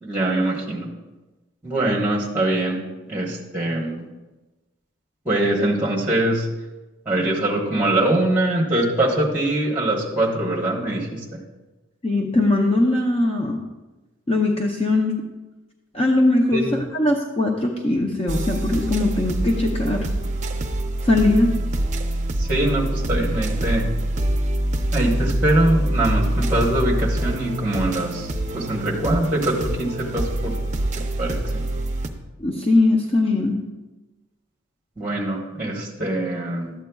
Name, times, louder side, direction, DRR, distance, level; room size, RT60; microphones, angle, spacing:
voice 1, 0.0-0.9 1.6-2.8 3.1-4.1 5.2-6.5 7.1-11.4 16.5-16.7 22.4-23.9 24.9-30.6 31.2-31.6 35.0-36.7, right 1 dB, 10° right, -3 dB, 1.1 m, -23 dB
voice 2, 12.0-13.6 14.3-15.2 15.9-20.1 21.0-21.5 32.4-33.6, left 2 dB, 30° left, 0 dB, 0.6 m, -20 dB
sound 1, 18.3-32.1, right 1 dB, 35° right, 0.5 m, -25 dB
12.0 x 8.3 x 2.3 m, 1.1 s
head